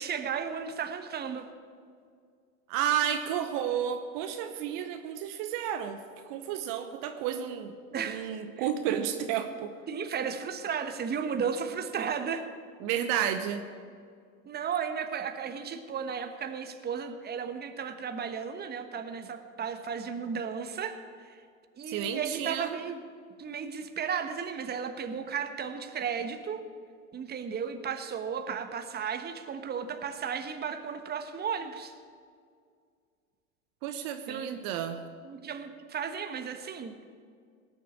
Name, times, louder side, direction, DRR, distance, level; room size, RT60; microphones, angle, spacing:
voice 1, 0.0-1.5 7.9-8.3 8.6-8.7 9.9-12.5 14.4-21.0 21.2-21.4 21.8-23.0 23.4-26.6 27.1-31.9 34.3-34.6 35.2-36.9, right 6 dB, 25° right, 8 dB, 1.2 m, -34 dB
voice 2, 2.7-6.0 6.3-7.8 8.1-9.7 12.8-13.6 21.9-22.8 33.8-35.0, right 9 dB, 50° right, 8 dB, 1.1 m, -31 dB
18.5 x 7.7 x 8.6 m, 2.2 s
hypercardioid pair, 90°, 41 cm